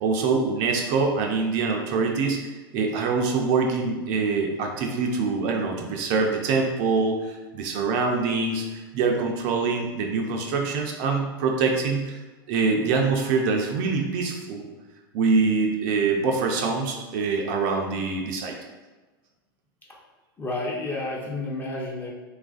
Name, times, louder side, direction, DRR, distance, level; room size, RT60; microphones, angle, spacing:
voice 1, 0.0-12.2 12.5-14.7 15.1-18.5, right 4 dB, 50° right, 2 dB, 0.4 m, -24 dB
voice 2, 20.4-22.1, left 2 dB, 15° left, -3 dB, 0.6 m, -30 dB
3.1 x 2.4 x 2.4 m, 1.2 s
hypercardioid pair, 115°, 13 cm